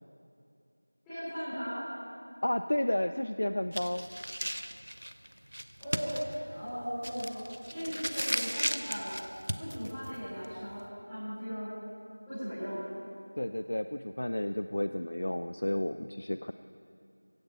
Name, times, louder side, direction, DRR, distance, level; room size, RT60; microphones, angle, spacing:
voice 1, 1.0-1.8 5.8-7.4 7.7-9.1 9.5-11.7 12.3-12.8, equal, ahead, -23 dB, 4.9 m, -37 dB
voice 2, 2.4-4.1 13.4-16.5, left 1 dB, 35° left, 10 dB, 0.3 m, -32 dB
sound 1, 3.7-10.9, equal, 80° right, 1.0 m, -36 dB
16.0 x 15.5 x 5.6 m, 2.7 s
figure-of-eight pair, 175°, 0 cm